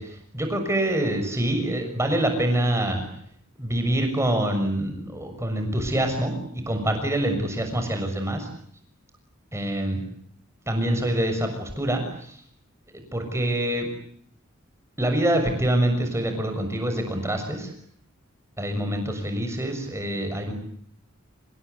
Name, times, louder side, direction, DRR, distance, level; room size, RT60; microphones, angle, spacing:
voice 1, 0.0-3.0 3.6-8.5 9.5-10.0 10.7-12.4 12.9-13.9 15.0-17.7 18.6-20.5, right 1 dB, 15° right, 5 dB, 6.6 m, -25 dB
27.0 x 21.5 x 10.0 m, 0.64 s
head